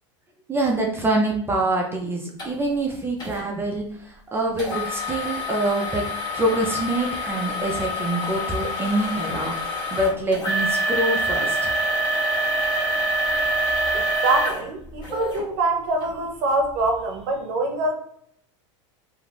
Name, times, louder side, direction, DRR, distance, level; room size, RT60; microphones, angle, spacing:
voice 1, 0.5-6.1 6.3-11.7, right 1 dB, 15° right, -1 dB, 0.4 m, -25 dB
sound 1, 2.4-2.5 3.2-3.4 4.6-15.4 16.0-16.1 16.7-16.8, equal, 25° left, 1.0 m, -26 dB
voice 2, 13.9-17.9, right 2 dB, 60° right, 3 dB, 0.6 m, -24 dB
2.4 x 2.3 x 3.3 m, 0.67 s
supercardioid pair, 120°, 16 cm